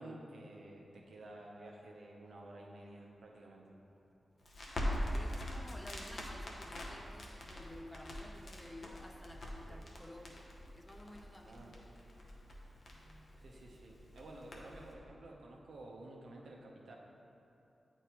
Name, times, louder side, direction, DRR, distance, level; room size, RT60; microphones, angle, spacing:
voice 1, 0.0-3.7 9.7-9.8 11.4-12.0 13.4-17.0, right 1 dB, 85° right, -1 dB, 0.8 m, -52 dB
Crackle, 4.4-14.9, left 1 dB, 60° left, 0.9 m, -43 dB
voice 2, 5.1-11.8 12.7-13.6, left 1 dB, 10° left, 3 dB, 0.5 m, -53 dB
8.4 x 4.5 x 3.0 m, 2.9 s
cardioid pair, 75°, 0 cm